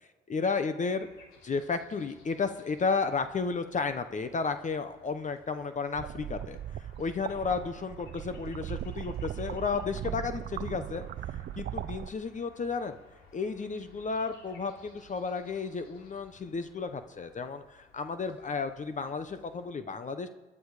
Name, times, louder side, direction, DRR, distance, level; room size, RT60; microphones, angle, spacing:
voice 1, 0.3-1.1 1.4-13.0 13.3-20.3, left 4 dB, 40° left, 9 dB, 1.0 m, -33 dB
sound 1, 1.0-19.7, left 3 dB, 90° left, 3.3 m, -59 dB
sound 2, 5.9-12.1, right 11 dB, 60° right, 0.6 m, -38 dB
20.5 x 11.0 x 5.0 m, 1.2 s
cardioid pair, 90°, 20 cm